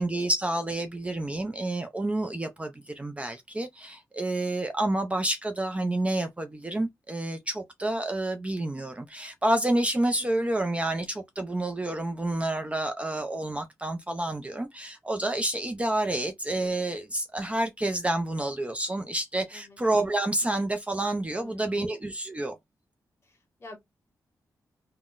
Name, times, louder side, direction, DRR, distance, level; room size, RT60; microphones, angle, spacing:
voice 1, 0.0-22.6, right 1 dB, 20° right, 0.4 m, -29 dB
voice 2, 10.2-10.6 19.5-19.8 21.4-21.9 23.2-23.8, left 3 dB, 40° left, 1.5 m, -48 dB
3.6 x 2.1 x 2.4 m
cardioid pair, 85°, 7 cm